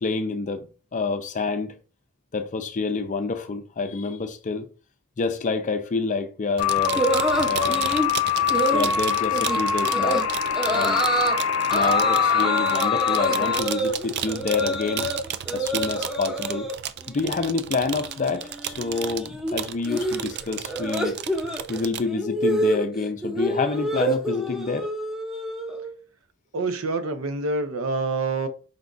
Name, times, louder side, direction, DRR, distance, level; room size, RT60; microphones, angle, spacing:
voice 1, 0.0-1.8 2.3-4.7 5.2-7.0 7.4-7.9 8.7-10.3 10.7-11.1 11.7-15.1 15.5-16.7 17.1-21.2 21.7-24.9, left 4 dB, 35° left, 0.5 m, -28 dB
sound 1, 6.6-13.6, left 7 dB, 85° left, 0.5 m, -24 dB
sound 2, 6.6-22.1, right 10 dB, 55° right, 0.4 m, -34 dB
sound 3, 7.0-8.1 8.5-8.9 9.3-9.6 9.9-10.2 10.6-11.4 11.7-15.2 15.5-16.7 17.1-17.5 17.7-25.9, equal, 5° right, 0.8 m, -27 dB
voice 2, 26.5-28.5, right 3 dB, 85° right, 0.7 m, -26 dB
5.0 x 2.3 x 3.8 m
head